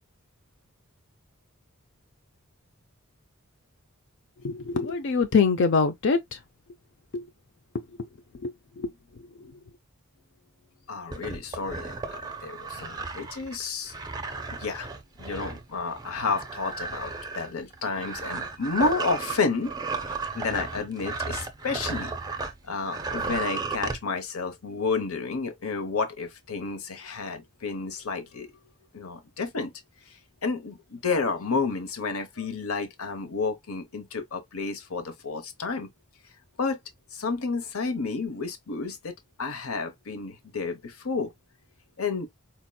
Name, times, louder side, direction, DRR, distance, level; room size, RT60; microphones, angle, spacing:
voice 1, 4.4-6.4 7.1-7.3 8.4-8.9 9.4-9.5, left 5 dB, 55° left, 0.5 m, -24 dB
voice 2, 10.9-13.9 14.6-14.9 15.2-19.7 20.1-22.1 22.6-28.5 28.9-29.7 30.4-35.9 36.6-36.8 37.1-39.1 39.4-41.3 42.0-42.3, left 4 dB, 75° left, 0.9 m, -31 dB
sound 1, 11.1-22.6 22.9-24.0, right 4 dB, 15° right, 0.5 m, -34 dB
4.3 x 2.8 x 2.2 m
head